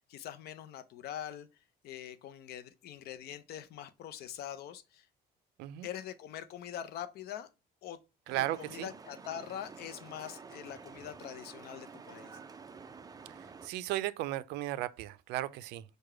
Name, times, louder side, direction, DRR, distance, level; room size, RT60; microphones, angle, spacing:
voice 1, 0.1-1.5 1.8-5.1 5.8-7.5 7.8-8.0 8.3-12.4, left 10 dB, 70° left, 0.5 m, -43 dB
sound 1, 8.3-13.7, right 5 dB, 20° right, 0.4 m, -50 dB
voice 2, 8.3-8.9 13.3-15.8, right 14 dB, 90° right, 0.4 m, -36 dB
4.8 x 2.2 x 4.7 m
cardioid pair, 110°, 17 cm